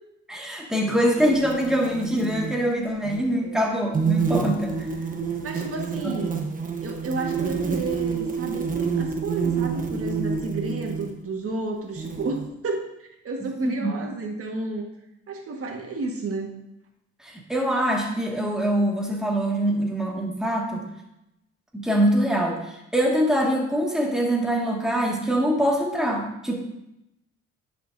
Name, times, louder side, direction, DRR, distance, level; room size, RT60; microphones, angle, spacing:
voice 1, 0.3-4.8 6.0-6.1 13.6-13.9 17.2-20.8 21.7-26.5, equal, ahead, -2 dB, 1.9 m, -24 dB
sound 1, 1.2-2.6 3.0-3.2 3.9-11.1 12.0-12.5, right 6 dB, 25° right, 1.1 m, -28 dB
voice 2, 5.4-6.4 6.8-12.9 13.2-14.9 15.3-16.5, right 3 dB, 50° right, 1 dB, 1.6 m, -31 dB
10.0 x 6.7 x 2.7 m, 0.87 s
cardioid pair, 90°, 30 cm